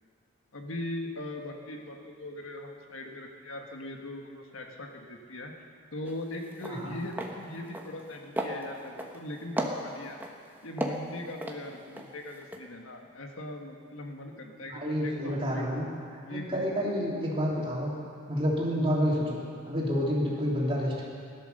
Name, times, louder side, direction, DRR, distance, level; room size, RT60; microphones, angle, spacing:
voice 1, 0.5-5.6 5.9-10.2 10.6-15.8 16.2-16.8 20.3-20.4, left 1 dB, 85° left, 2 dB, 1.6 m, -40 dB
sound 1, 6.1-6.2 6.5-6.8 7.1-7.3 7.7-8.1 8.4-9.2 9.6-10.3 10.8-12.1 12.4-12.6, right 1 dB, 10° right, 1.1 m, -34 dB
voice 2, 6.7-7.0 14.7-17.9 18.3-19.4 19.7-21.1, equal, 25° right, -4 dB, 2.8 m, -29 dB
18.0 x 12.0 x 6.6 m, 2.4 s
head